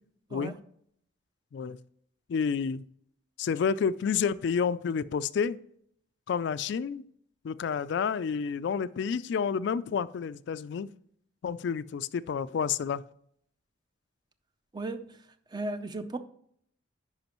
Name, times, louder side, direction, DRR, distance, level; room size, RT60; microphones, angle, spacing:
voice 1, 2.3-2.8 3.4-5.6 6.3-7.0 7.4-10.9 11.4-13.0, left 6 dB, 65° left, 0.3 m, -29 dB
voice 2, 14.7-15.1 15.5-16.2, right 2 dB, 20° right, 0.5 m, -35 dB
10.5 x 4.9 x 3.0 m
head